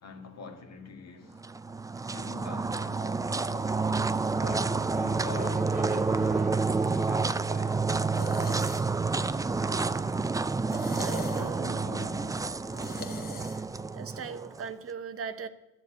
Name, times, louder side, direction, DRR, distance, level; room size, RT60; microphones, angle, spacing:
voice 1, 0.0-1.4 2.1-3.9 4.4-7.9 11.1-12.7, left 4 dB, 60° left, 1.7 m, -44 dB
sound 1, 1.4-14.7, right 4 dB, 10° right, 0.4 m, -29 dB
sound 2, 4.1-11.9, right 3 dB, 30° right, 1.2 m, -49 dB
sound 3, 6.3-13.9, left 4 dB, 30° left, 1.3 m, -46 dB
voice 2, 9.6-10.0 11.0-11.8 13.9-15.5, right 6 dB, 50° right, 0.9 m, -39 dB
12.0 x 6.8 x 8.3 m
cardioid pair, 90°, 30 cm